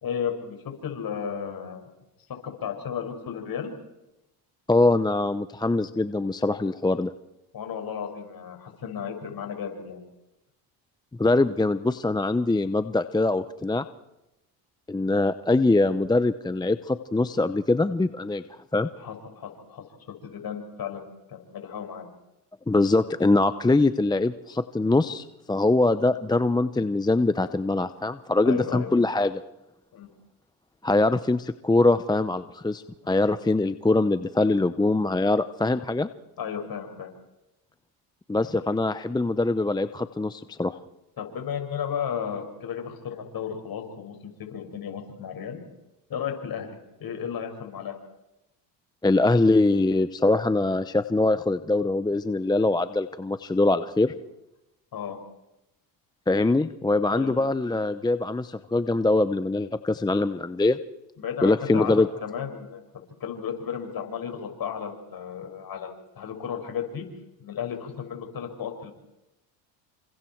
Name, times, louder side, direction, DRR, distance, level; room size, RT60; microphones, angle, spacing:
voice 1, 0.0-1.9 2.4-3.7 7.5-10.0 19.0-19.8 20.2-22.1 28.4-28.9 29.9-30.1 36.4-37.1 41.2-45.6 46.1-48.0 54.9-55.2 57.1-57.3 61.2-62.8 63.2-67.0 67.4-68.9, left 8 dB, 45° left, 4 dB, 6.1 m, -34 dB
voice 2, 4.7-7.1 11.2-13.8 14.9-18.4 18.7-18.9 22.7-29.4 30.8-36.1 38.3-40.8 49.0-54.1 56.3-60.8 61.4-62.1, left 2 dB, 10° left, 12 dB, 0.7 m, -23 dB
29.5 x 26.0 x 4.6 m, 0.94 s
supercardioid pair, 85°, 48 cm